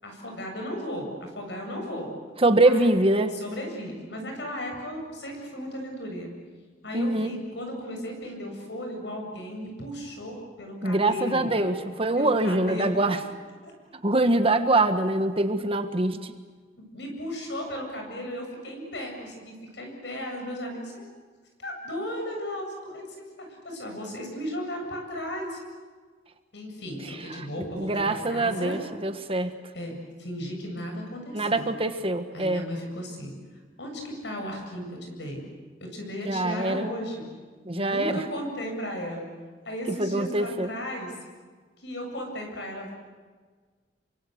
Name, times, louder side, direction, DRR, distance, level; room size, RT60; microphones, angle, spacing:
voice 1, 0.0-2.1 2.6-2.9 3.3-6.3 6.8-11.5 12.1-12.9 13.6-13.7 16.8-21.1 21.6-25.6 26.5-28.8 29.7-31.7 32.3-33.3 33.8-35.4 35.8-37.3 37.7-39.3 39.6-41.1 41.8-42.9, equal, 75° left, 2 dB, 7.9 m, -35 dB
voice 2, 2.4-3.4 6.9-7.3 10.8-13.2 14.0-16.3 27.6-29.5 31.3-32.6 36.2-36.9 37.6-38.2 40.0-40.7, right 2 dB, 35° right, 8 dB, 1.5 m, -24 dB
29.0 x 24.5 x 8.0 m, 1.5 s
head